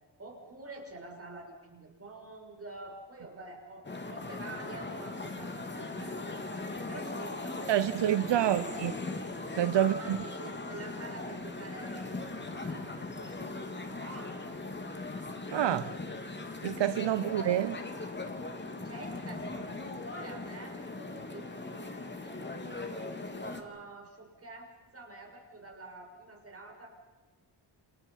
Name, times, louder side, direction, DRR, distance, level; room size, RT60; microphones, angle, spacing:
voice 1, 0.2-8.8 9.7-14.4 15.9-16.1 18.6-26.9, right 2 dB, 35° right, 6.7 m, -48 dB
sound 1, 3.8-23.6, left 2 dB, 25° left, 2.9 m, -39 dB
voice 2, 7.7-8.9 9.5-10.2 15.5-15.9 16.6-17.8, right 11 dB, 75° right, 0.8 m, -27 dB
29.0 x 27.5 x 5.8 m
wide cardioid pair, 115°, 43 cm